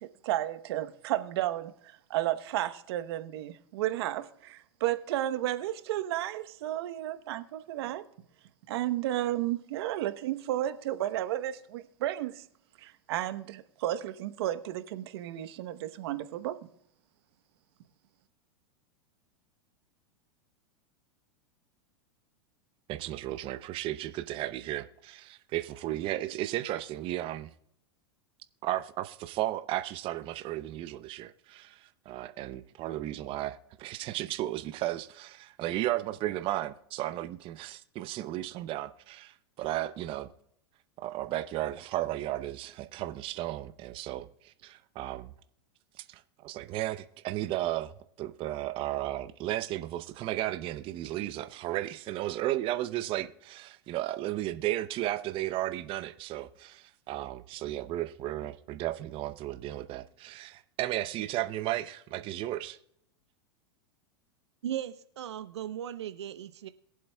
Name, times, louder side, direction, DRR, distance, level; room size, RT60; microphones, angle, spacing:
voice 1, 0.0-8.0 8.7-12.4 12.8-16.6, right 13 dB, 65° right, 1.0 m, -33 dB
voice 2, 22.9-27.5 28.6-40.3 41.0-45.3 46.0-47.9 48.2-62.8, right 14 dB, 40° right, 0.6 m, -34 dB
voice 3, 64.6-66.7, right 11 dB, 85° right, 0.6 m, -37 dB
22.0 x 7.7 x 2.3 m
hypercardioid pair, 110°, 14 cm